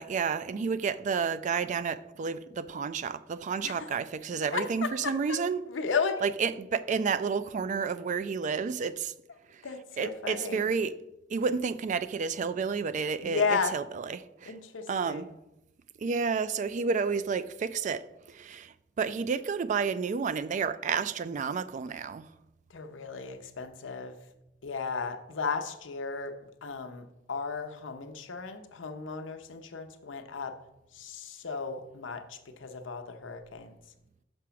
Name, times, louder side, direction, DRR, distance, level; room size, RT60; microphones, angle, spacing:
voice 1, 0.0-5.6 6.2-9.1 9.5-9.6 10.0-11.0 11.3-14.5 14.9-15.3 16.0-22.3, right 5 dB, 40° right, 0.3 m, -31 dB
voice 2, 3.6-3.9 4.5-5.4 5.7-6.3 9.6-10.7 13.2-13.7 14.5-15.2 22.7-24.2 24.6-26.3 26.6-30.5 30.9-33.7, left 5 dB, 80° left, 0.7 m, -34 dB
6.1 x 5.0 x 5.7 m
head